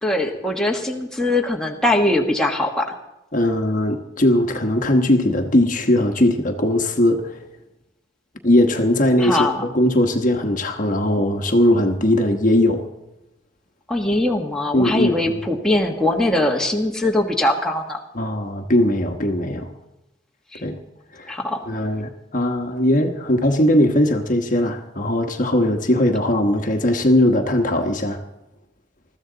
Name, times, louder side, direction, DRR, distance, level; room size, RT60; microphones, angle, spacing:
voice 1, 0.0-2.9 9.2-9.6 13.9-18.0 20.5-20.6 21.3-21.6, left 1 dB, 5° left, 0 dB, 1.5 m, -21 dB
voice 2, 3.3-7.4 8.4-12.9 14.7-15.2 18.1-19.7 20.6-20.8 21.1-21.4 21.7-28.2, left 1 dB, 45° left, 4 dB, 1.2 m, -19 dB
20.5 x 14.0 x 4.0 m, 0.95 s
head